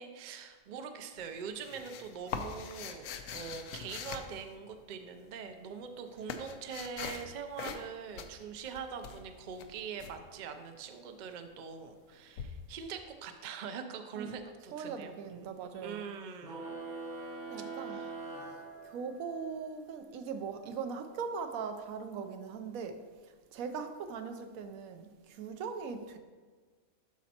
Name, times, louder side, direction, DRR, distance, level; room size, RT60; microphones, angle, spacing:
voice 1, 0.0-15.5 15.8-16.8 17.8-18.2, right 6 dB, 60° right, 6 dB, 0.4 m, -43 dB
sound 1, 1.2-5.0 5.7-7.3 7.6-7.9 8.2-10.1 12.4-12.5, left 6 dB, 75° left, 1.0 m, -42 dB
voice 2, 14.6-16.0 17.5-18.1 18.8-26.2, right 5 dB, 80° right, 8 dB, 1.1 m, -40 dB
sound 2, 16.4-19.4, right 3 dB, 35° right, 1.3 m, -42 dB
12.0 x 4.2 x 2.9 m, 1.5 s
omnidirectional pair, 1.5 m